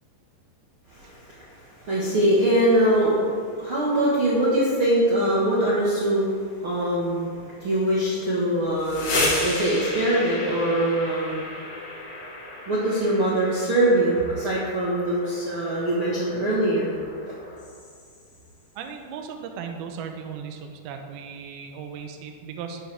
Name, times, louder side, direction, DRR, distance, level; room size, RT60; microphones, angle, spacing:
voice 1, 0.9-6.3 6.6-11.4 12.7-16.9 17.3-17.4, right 1 dB, 50° right, -7 dB, 1.6 m, -23 dB
sound 1, 8.6-18.4, left 2 dB, 80° left, 5.2 m, -33 dB
voice 2, 18.8-22.8, right 6 dB, 75° right, 4 dB, 2.6 m, -37 dB
11.5 x 11.5 x 3.6 m, 2.1 s
omnidirectional pair, 4.9 m